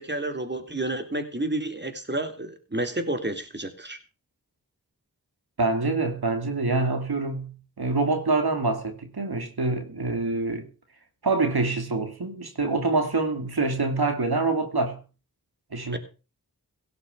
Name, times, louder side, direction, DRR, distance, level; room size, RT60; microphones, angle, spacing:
voice 1, 0.0-4.0 15.9-16.0, right 1 dB, 30° right, 3.4 m, -30 dB
voice 2, 5.6-10.7 11.2-15.0 15.7-16.0, right 3 dB, 90° right, 2.5 m, -26 dB
17.5 x 6.9 x 6.9 m
wide cardioid pair, 45°, 37 cm